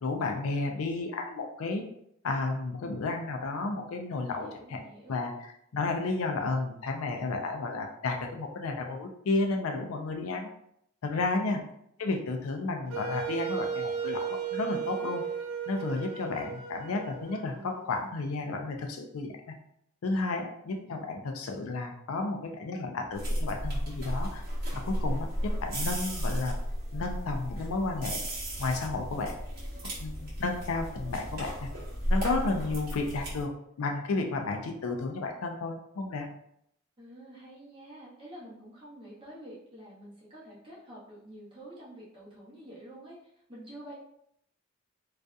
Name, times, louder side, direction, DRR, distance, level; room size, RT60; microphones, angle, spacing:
voice 1, 0.0-1.8 2.2-4.8 5.1-5.3 5.7-10.5 11.0-11.6 12.0-15.2 15.7-19.5 20.0-24.4 24.7-26.5 26.9-28.2 28.6-29.3 30.0-31.7 32.1-33.5 33.8-36.3, left 3 dB, 75° left, 3 dB, 0.4 m, -32 dB
voice 2, 4.3-5.2 11.3-11.7 37.0-43.9, right 1 dB, 25° right, -6 dB, 0.8 m, -48 dB
Wind instrument woodwind instrument, 12.9-17.8, right 7 dB, 85° right, 0.4 m, -35 dB
sound 1, 23.1-33.4, equal, 45° right, 1.0 m, -34 dB
2.6 x 2.3 x 2.2 m, 0.74 s
head